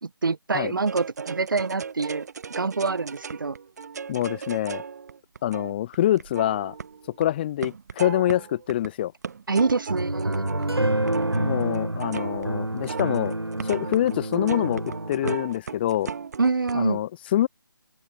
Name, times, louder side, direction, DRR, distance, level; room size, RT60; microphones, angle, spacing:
voice 1, 0.0-2.3 2.6-3.6 9.5-10.5 16.4-17.0, right 4 dB, 60° right, 2.2 m, -25 dB
sound 1, 0.9-7.3 7.6-8.9 9.2-16.7, right 6 dB, 45° right, 7.0 m, -37 dB
voice 2, 4.1-4.8 5.4-6.7 7.2-9.1 11.3-13.3 13.6-16.1 16.7-17.5, left 12 dB, 25° left, 3.8 m, -25 dB
sound 2, 9.9-15.4, right 1 dB, 90° right, 2.5 m, -28 dB
figure-of-eight pair, 150°, 12 cm